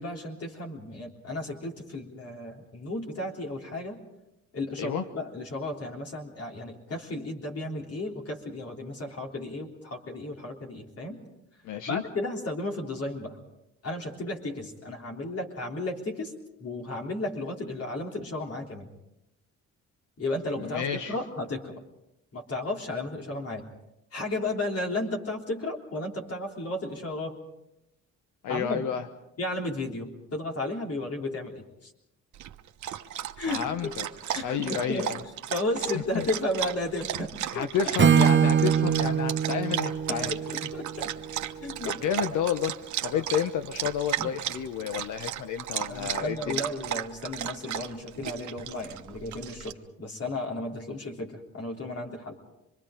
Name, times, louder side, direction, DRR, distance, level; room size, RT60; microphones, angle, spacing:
voice 1, 0.0-4.0 4.5-11.2 11.9-13.4 13.8-16.3 16.6-18.9 20.2-21.7 22.3-23.6 24.1-27.3 28.5-28.9 29.4-31.9 33.4-34.0 34.3-35.1 35.5-37.3 37.5-37.7 40.1-41.1 41.6-42.2 43.1-43.2 44.2-44.3 45.9-52.4, left 2 dB, 50° left, 0 dB, 3.5 m, -34 dB
voice 2, 11.6-12.0 20.6-21.1 28.4-29.1 33.5-34.1 34.4-35.2 36.1-36.3 37.5-40.4 41.8-42.7 43.0-46.6, left 8 dB, 80° left, 9 dB, 1.0 m, -30 dB
Dog, 32.3-49.7, right 11 dB, 70° right, 1.1 m, -35 dB
Acoustic guitar / Strum, 38.0-41.9, right 8 dB, 40° right, 1.0 m, -24 dB
26.5 x 22.5 x 5.1 m, 0.88 s
cardioid pair, 90°, 30 cm